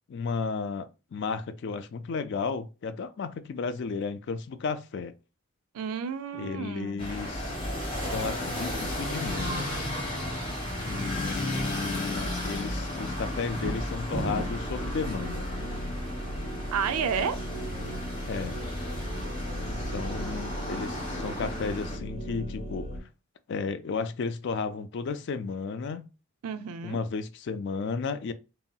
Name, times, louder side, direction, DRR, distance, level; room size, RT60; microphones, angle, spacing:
voice 1, 0.1-5.1 6.4-7.5 8.1-9.9 10.8-15.5 18.3-18.6 19.7-22.9 23.5-26.1 26.8-28.3, left 4 dB, 50° left, 0.3 m, -33 dB
voice 2, 5.7-7.0 16.7-17.4 26.4-27.0, right 6 dB, 85° right, 0.4 m, -31 dB
sound 1, 7.0-22.0, left 1 dB, 25° left, 1.4 m, -34 dB
sound 2, 13.4-14.7, equal, 55° right, 1.0 m, -34 dB
sound 3, 14.1-23.0, equal, 85° left, 1.0 m, -37 dB
2.9 x 2.7 x 2.3 m
head